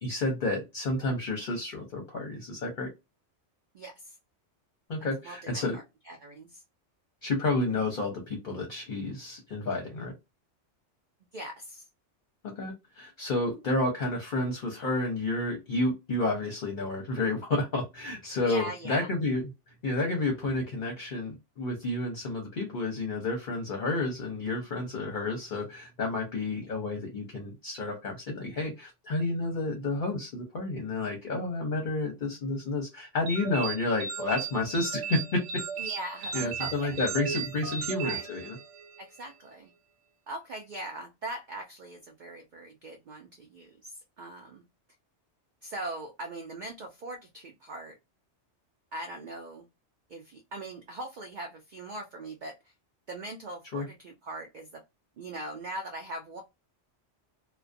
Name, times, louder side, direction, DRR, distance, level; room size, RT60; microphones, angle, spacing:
voice 1, 0.0-2.9 4.9-5.8 7.2-10.1 12.4-19.5 19.8-35.4 36.3-38.6 53.7-53.9, left 2 dB, 50° left, 0.7 m, -30 dB
voice 2, 3.7-4.1 5.2-6.6 11.3-11.9 18.4-19.1 35.8-37.0 38.0-38.2 39.0-39.7 40.3-44.6 45.6-48.0 48.9-49.7 50.1-52.7 53.1-54.8 55.2-56.4, right 1 dB, 55° right, 0.5 m, -41 dB
sound 1, 33.3-39.0, right 6 dB, 80° right, 0.9 m, -36 dB
2.4 x 2.1 x 2.4 m
omnidirectional pair, 1.2 m